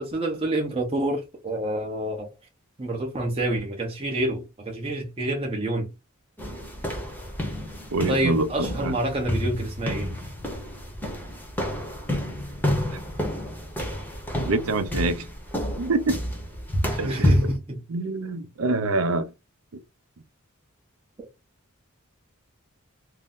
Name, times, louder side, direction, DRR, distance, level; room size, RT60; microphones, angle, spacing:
voice 1, 0.0-2.3 2.8-5.9 8.1-10.1 16.9-17.8, right 1 dB, 25° right, 0.7 m, -28 dB
sound 1, 6.4-17.6, left 1 dB, 10° left, 0.7 m, -29 dB
voice 2, 7.9-8.5 8.8-8.9 14.5-15.2 15.8-16.2 17.0-17.3 17.9-19.3, right 3 dB, 75° right, 0.5 m, -25 dB
2.6 x 2.0 x 3.6 m
head